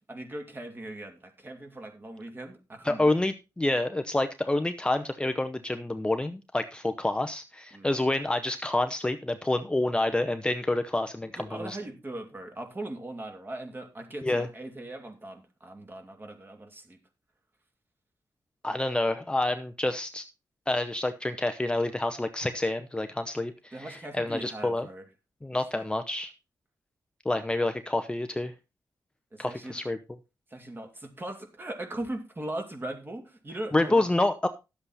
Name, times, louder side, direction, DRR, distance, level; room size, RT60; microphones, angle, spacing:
voice 1, 0.1-3.2 7.7-7.9 11.4-17.0 23.7-25.1 25.7-25.9 29.3-29.8 30.5-34.0, right 1 dB, 30° right, 5 dB, 2.6 m, -39 dB
voice 2, 2.8-11.8 14.2-14.5 18.6-20.2 20.7-24.9 25.4-26.3 27.2-28.5 29.4-30.0 33.7-34.5, left 2 dB, 10° left, 8 dB, 0.8 m, -28 dB
11.5 x 7.9 x 4.1 m, 0.27 s
wide cardioid pair, 105°, 8 cm